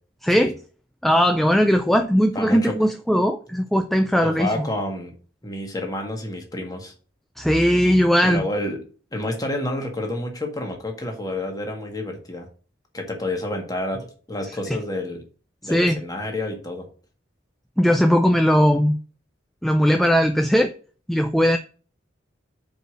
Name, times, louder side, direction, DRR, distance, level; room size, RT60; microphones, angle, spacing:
voice 1, 0.2-0.5 1.0-4.5 7.4-8.4 15.7-16.0 17.8-19.0 19.6-20.7 21.1-21.6, equal, ahead, 6 dB, 0.4 m, -18 dB
voice 2, 2.3-2.8 4.2-5.1 5.4-6.9 8.2-8.8 9.1-12.5 12.9-15.2 15.6-16.9, left 1 dB, 20° left, 3 dB, 1.6 m, -29 dB
5.1 x 4.8 x 6.2 m, 0.39 s
head